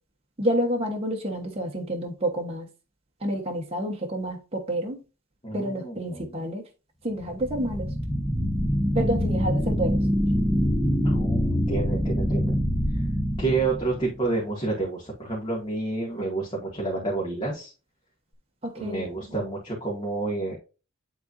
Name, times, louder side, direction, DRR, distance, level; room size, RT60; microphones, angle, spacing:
voice 1, 0.4-2.7 3.2-5.0 5.5-6.6 7.0-7.9 8.9-10.1 18.6-19.0, equal, 30° right, 1.2 m, -29 dB
voice 2, 5.4-6.3 11.0-12.6 13.4-17.7 18.8-20.6, right 3 dB, 25° left, 2.1 m, -29 dB
sound 1, 7.2-14.3, equal, ahead, 0.7 m, -25 dB
10.0 x 3.9 x 2.6 m
head